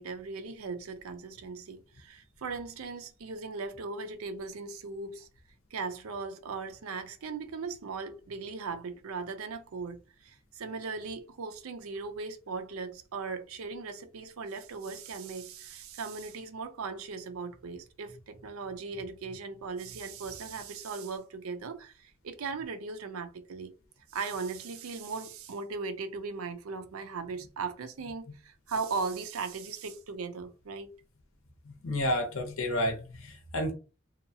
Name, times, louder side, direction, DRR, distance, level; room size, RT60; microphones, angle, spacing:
voice 1, 0.0-5.3 5.7-23.7 24.1-30.9, right 4 dB, 85° right, 0.5 m, -38 dB
voice 2, 31.8-33.7, left 1 dB, 70° left, 0.8 m, -30 dB
2.7 x 2.3 x 2.7 m
head